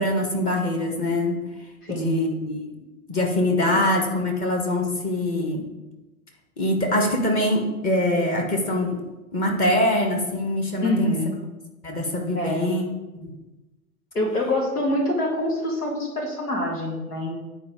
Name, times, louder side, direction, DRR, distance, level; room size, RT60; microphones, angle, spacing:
voice 1, 0.0-1.4 1.9-2.7 3.1-5.6 6.6-9.0 9.3-11.2 11.8-12.8 13.2-13.3, left 1 dB, 20° left, 1 dB, 1.3 m, -23 dB
voice 2, 1.8-2.2 10.8-11.3 12.3-12.6 14.1-17.3, left 1 dB, 85° left, 0 dB, 2.2 m, -25 dB
9.6 x 4.5 x 4.9 m, 1.1 s
hypercardioid pair, 125°, 45 cm